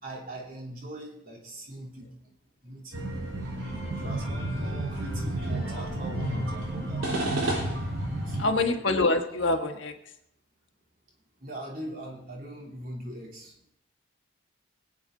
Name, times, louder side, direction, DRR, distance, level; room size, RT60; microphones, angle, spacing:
voice 1, 0.0-2.1 2.6-3.4 3.9-7.1 8.2-8.8 11.4-13.5, right 1 dB, 45° right, -2 dB, 3.1 m, -41 dB
sound 1, 2.9-8.4, right 1 dB, 75° right, 3.8 m, -31 dB
voice 2, 8.4-9.9, left 2 dB, 65° left, 4 dB, 1.3 m, -25 dB
22.0 x 9.0 x 3.8 m, 0.77 s
head